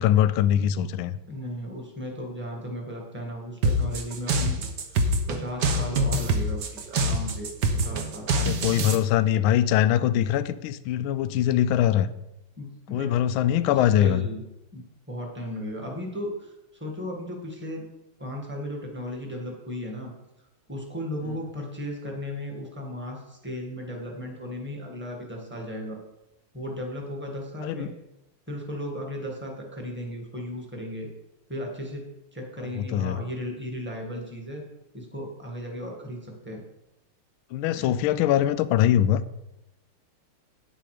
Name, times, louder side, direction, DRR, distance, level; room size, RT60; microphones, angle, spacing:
voice 1, 0.0-1.2 8.4-12.1 12.9-14.2 27.6-27.9 32.9-33.2 37.5-39.2, left 11 dB, 75° left, 13 dB, 1.3 m, -22 dB
voice 2, 1.3-4.6 4.9-5.0 5.3-7.5 7.8-8.3 12.6-13.1 13.7-14.4 14.7-17.8 18.2-20.1 20.7-26.0 26.5-27.9 28.5-31.1 31.5-32.0 32.3-34.6 34.9-36.6 37.7-38.0, equal, 5° right, 0 dB, 1.7 m, -35 dB
sound 1, 3.6-9.0, right 1 dB, 55° right, 1.4 m, -25 dB
9.4 x 7.7 x 5.0 m, 0.92 s
omnidirectional pair, 2.4 m